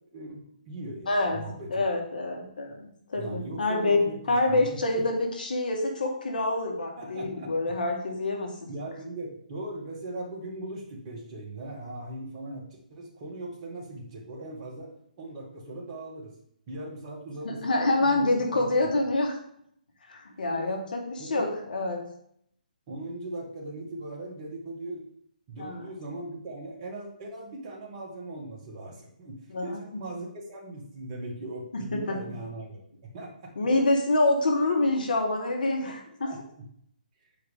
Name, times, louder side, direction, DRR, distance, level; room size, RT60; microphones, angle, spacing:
voice 1, 0.1-1.8 3.1-5.0 7.0-7.5 8.7-14.9 15.2-16.3 16.7-18.8 20.5-20.8 21.2-21.5 22.9-25.0 25.5-33.5 35.8-35.9 36.2-36.4, right 2 dB, 35° right, -2 dB, 2.1 m, -39 dB
voice 2, 1.1-1.4 1.7-8.7 17.4-19.4 20.1-22.1 25.6-25.8 29.5-30.0 31.7-32.2 33.6-36.3, left 2 dB, 65° left, 2 dB, 1.7 m, -27 dB
7.9 x 4.7 x 3.7 m, 0.69 s
figure-of-eight pair, 140°, 5 cm